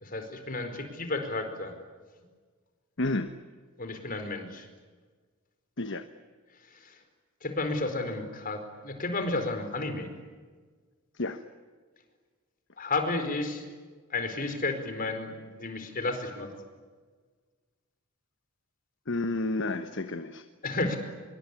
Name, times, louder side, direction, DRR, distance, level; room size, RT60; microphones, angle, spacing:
voice 1, 0.0-1.7 3.8-4.7 6.7-7.0 7.4-10.1 12.8-13.7 14.1-16.5 20.6-21.0, left 2 dB, 40° left, 7 dB, 4.7 m, -32 dB
voice 2, 3.0-3.3 5.8-6.1 11.1-11.4 19.1-20.5, left 2 dB, 60° left, 9 dB, 1.2 m, -31 dB
26.5 x 23.0 x 9.8 m, 1.5 s
head